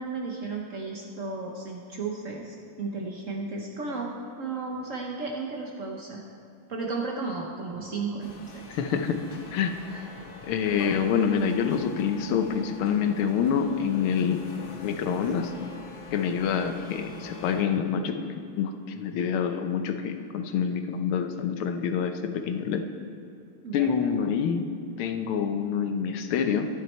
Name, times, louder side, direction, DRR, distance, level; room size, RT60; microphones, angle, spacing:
voice 1, 0.0-6.2 6.7-8.6 9.9-10.1 23.6-23.9, right 3 dB, 55° right, 0 dB, 0.9 m, -34 dB
sound 1, 8.2-17.6, left 3 dB, 70° left, 2.0 m, -44 dB
voice 2, 8.7-9.2 9.5-9.7 10.4-14.4 14.8-15.5 16.1-18.2 18.6-22.8 23.7-24.6 25.0-26.7, left 7 dB, 90° left, 7 dB, 1.6 m, -26 dB
12.5 x 9.6 x 4.4 m, 2.5 s
omnidirectional pair, 2.3 m